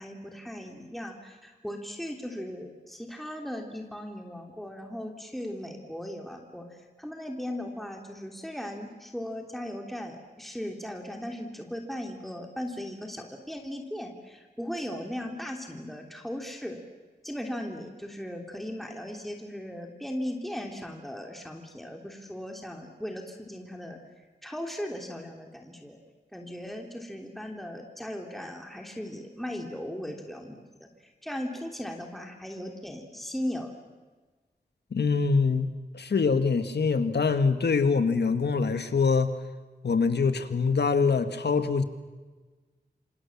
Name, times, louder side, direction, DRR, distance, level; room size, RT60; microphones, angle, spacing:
voice 1, 0.0-6.6 7.0-16.8 17.2-24.0 24.4-26.0 26.3-33.7, equal, ahead, 2 dB, 3.2 m, -37 dB
voice 2, 34.9-39.3 39.8-41.8, left 4 dB, 85° left, 9 dB, 1.8 m, -24 dB
28.0 x 26.5 x 7.3 m, 1.3 s
wide cardioid pair, 85°, 17 cm